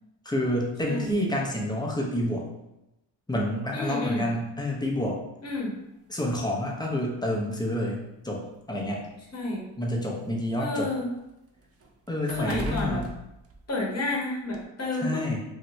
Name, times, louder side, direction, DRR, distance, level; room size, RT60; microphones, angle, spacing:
voice 1, 0.2-2.4 3.3-5.2 6.1-9.0 9.8-10.9 12.1-13.1 15.0-15.4, left 1 dB, 10° left, -2 dB, 0.8 m, -28 dB
voice 2, 3.7-4.3 5.4-5.8 9.3-9.7 10.6-11.1 12.3-13.0 13.7-15.3, left 2 dB, 35° left, -3 dB, 1.1 m, -30 dB
sound 1, 5.5-5.6 6.7-6.8 7.2-7.4 8.3-10.3 10.7-14.1 14.5-14.6, right 2 dB, 35° right, 0.5 m, -41 dB
2.8 x 2.5 x 3.2 m, 0.91 s
cardioid pair, 60°, 46 cm